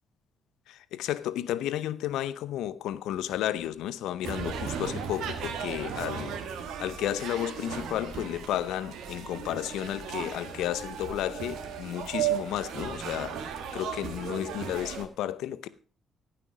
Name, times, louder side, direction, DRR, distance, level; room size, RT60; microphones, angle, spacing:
voice 1, 0.7-6.4 6.8-15.7, left 12 dB, 90° left, 0.6 m, -32 dB
sound 1, 4.2-15.1, right 8 dB, 80° right, 1.7 m, -36 dB
17.5 x 5.9 x 4.7 m
cardioid pair, 90°, 0 cm